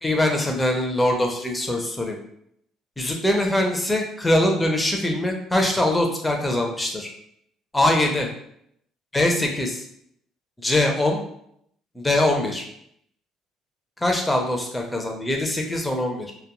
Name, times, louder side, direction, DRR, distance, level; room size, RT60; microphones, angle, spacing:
voice 1, 0.0-2.2 3.0-7.1 7.7-8.3 9.1-9.8 10.6-11.2 12.0-12.6 14.0-16.3, left 1 dB, 10° left, 2 dB, 0.5 m, -22 dB
2.3 x 2.2 x 2.9 m, 0.71 s
cardioid pair, 100°, 0 cm